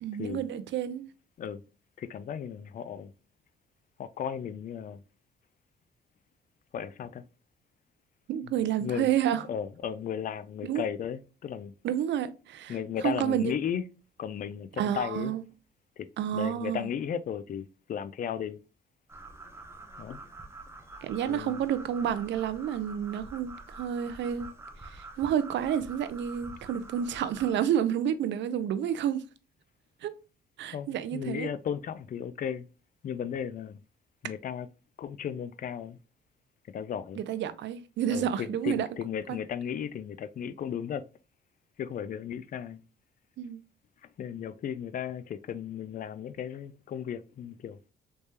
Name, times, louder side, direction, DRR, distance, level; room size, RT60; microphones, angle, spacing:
voice 1, 0.0-1.0 8.3-9.4 10.7-10.8 11.8-12.8 13.0-13.4 14.8-15.4 16.2-16.9 21.0-24.5 24.8-29.2 30.0-30.1 30.6-31.5 37.2-38.9 39.3-39.4 43.4-43.6, right 10 dB, 65° right, 0.5 m, -30 dB
voice 2, 2.0-3.1 4.0-5.0 6.7-7.3 8.8-9.1 9.5-11.7 12.7-13.8 14.2-15.3 16.0-16.1 16.3-18.6 20.0-20.2 21.3-21.6 30.7-32.7 33.0-33.8 34.2-34.7 35.0-36.0 36.7-37.2 38.1-41.0 41.8-42.8 44.0-47.8, left 8 dB, 45° left, 0.4 m, -35 dB
sound 1, 19.1-27.5, right 2 dB, 10° right, 0.7 m, -47 dB
3.3 x 3.3 x 2.7 m
cardioid pair, 90°, 20 cm